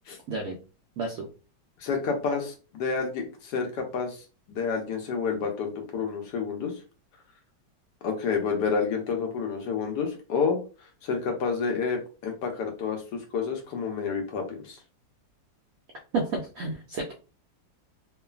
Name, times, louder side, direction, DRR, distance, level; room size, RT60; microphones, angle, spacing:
voice 1, 1.0-1.3 16.1-17.1, right 3 dB, 75° right, -1 dB, 0.8 m, -30 dB
voice 2, 1.8-6.7 8.0-10.6 11.0-14.8, left 5 dB, 75° left, 4 dB, 1.1 m, -29 dB
3.1 x 2.3 x 2.2 m, 0.34 s
omnidirectional pair, 2.0 m